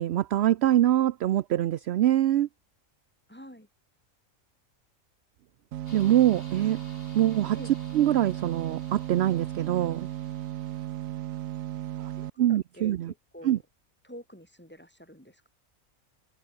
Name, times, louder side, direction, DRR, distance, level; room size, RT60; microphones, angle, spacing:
voice 1, 0.0-2.5 5.9-6.8 7.1-7.6 7.9-10.1 12.4-13.1 13.4-13.6, right 12 dB, 60° right, 0.8 m, -24 dB
voice 2, 3.3-3.7 6.5-6.7 7.5-7.7 12.2-13.6 14.0-15.5, equal, 10° left, 5.0 m, -48 dB
sound 1, 5.7-12.3, right 13 dB, 90° right, 1.0 m, -35 dB
sound 2, 5.9-10.9, left 3 dB, 45° left, 3.3 m, -54 dB
omnidirectional pair, 1.4 m